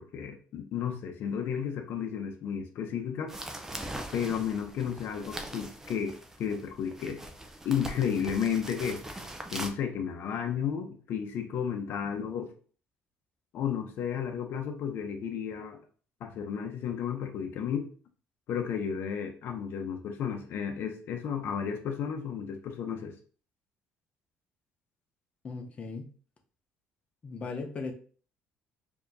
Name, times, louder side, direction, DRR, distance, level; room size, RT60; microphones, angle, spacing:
voice 1, 0.0-3.3 4.1-6.1 6.4-7.2 7.6-9.2 9.5-12.5 13.5-15.8 16.2-17.9 18.5-23.1, left 7 dB, 60° left, 4 dB, 0.7 m, -33 dB
sound 1, 3.3-9.7, right 1 dB, 10° right, 0.5 m, -41 dB
voice 2, 25.4-26.1 27.2-27.9, left 4 dB, 30° left, 4 dB, 0.8 m, -37 dB
4.4 x 2.8 x 2.7 m, 0.42 s
cardioid pair, 115°, 4 cm